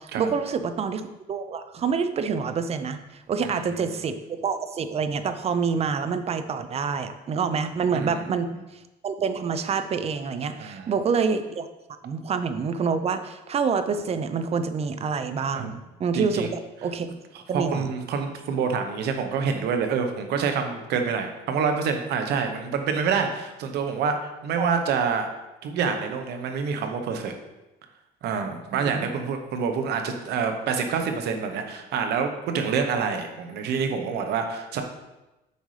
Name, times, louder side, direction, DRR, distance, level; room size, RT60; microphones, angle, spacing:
voice 1, 0.0-11.7 12.0-16.5 16.8-17.1 17.5-17.9 24.6-24.7 28.7-29.1, right 5 dB, 40° right, 10 dB, 0.6 m, -27 dB
voice 2, 3.4-3.8 7.9-8.3 10.6-10.9 15.5-15.7 16.1-16.5 17.5-25.3 25.6-27.3 28.2-34.8, right 6 dB, 75° right, 5 dB, 1.0 m, -27 dB
8.2 x 5.3 x 3.2 m, 1.0 s
cardioid pair, 110°, 17 cm